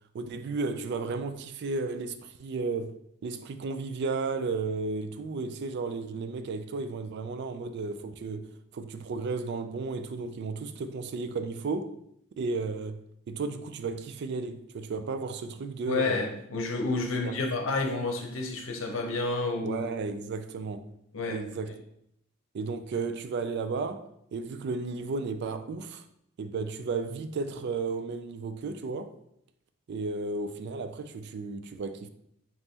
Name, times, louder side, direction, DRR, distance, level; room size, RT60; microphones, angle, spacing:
voice 1, 0.1-3.0 3.2-12.0 12.4-13.0 13.3-16.2 17.1-17.4 19.6-20.9 21.3-21.7 22.5-26.0 26.4-29.2 29.9-32.1, right 4 dB, 55° right, 0.3 m, -33 dB
voice 2, 15.9-19.8 21.1-21.4, left 3 dB, 70° left, 0.8 m, -30 dB
5.3 x 3.0 x 2.8 m
head